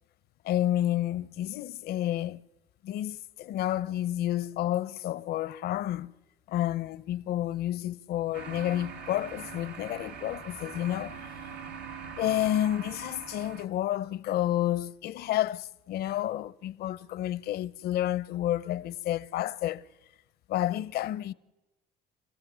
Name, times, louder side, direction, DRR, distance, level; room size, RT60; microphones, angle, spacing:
voice 1, 0.4-2.4 2.8-6.1 6.5-11.2 12.2-19.8 20.5-21.3, left 13 dB, 70° left, 0.7 m, -30 dB
sound 1, 8.3-13.7, right 5 dB, 80° right, 1.4 m, -42 dB
28.0 x 15.0 x 7.3 m
cardioid pair, 110°, 17 cm